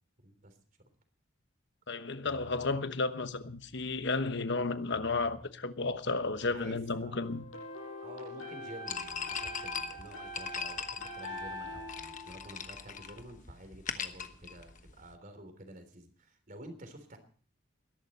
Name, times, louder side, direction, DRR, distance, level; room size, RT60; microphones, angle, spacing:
voice 1, 0.2-0.6 6.4-7.2 8.0-17.2, right 1 dB, 40° right, 3.5 m, -50 dB
voice 2, 1.9-7.4, left 3 dB, 60° left, 1.2 m, -33 dB
sound 1, 2.2-7.6, equal, 5° right, 1.7 m, -57 dB
sound 2, 7.2-13.1, equal, 85° left, 6.4 m, -44 dB
sound 3, 8.9-15.1, left 6 dB, 40° left, 1.1 m, -40 dB
21.5 x 11.5 x 4.2 m
head